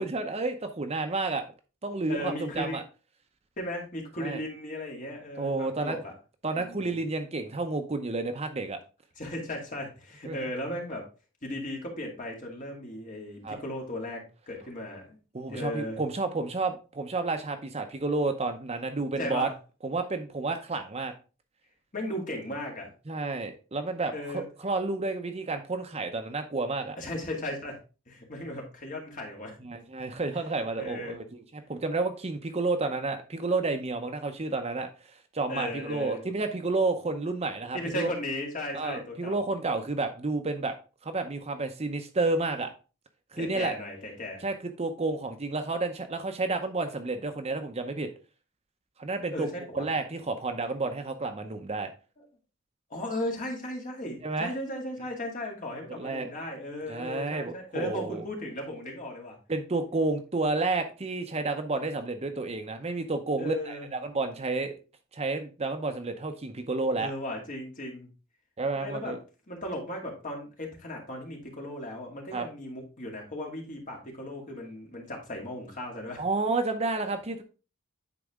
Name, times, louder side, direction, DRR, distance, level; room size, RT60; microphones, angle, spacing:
voice 1, 0.0-1.4 1.8-2.8 4.2-4.4 5.4-6.0 6.4-8.8 10.3-10.4 13.4-13.6 15.3-19.5 19.8-21.1 23.1-27.0 29.6-31.2 31.7-34.9 35.3-38.1 38.7-40.7 41.0-42.7 43.3-43.8 44.4-48.1 49.0-49.5 49.7-51.9 54.2-54.5 55.9-56.3 56.9-58.2 59.5-64.7 65.1-67.1 68.6-69.2 72.3-72.5 76.2-77.4, right 3 dB, 30° right, 7 dB, 0.7 m, -30 dB
voice 2, 2.1-2.8 3.6-6.1 6.5-7.0 9.2-11.1 11.4-15.2 15.5-16.0 19.2-19.5 21.9-22.9 24.1-24.4 27.0-27.8 28.1-29.6 30.3-30.4 30.8-31.2 35.5-36.3 37.7-39.4 43.4-44.4 49.3-49.9 52.2-52.3 52.9-59.4 63.4-63.9 67.0-68.1 68.8-69.1 69.5-76.2, left 1 dB, 40° left, 0 dB, 2.2 m, -36 dB
9.8 x 4.1 x 3.6 m, 0.33 s
head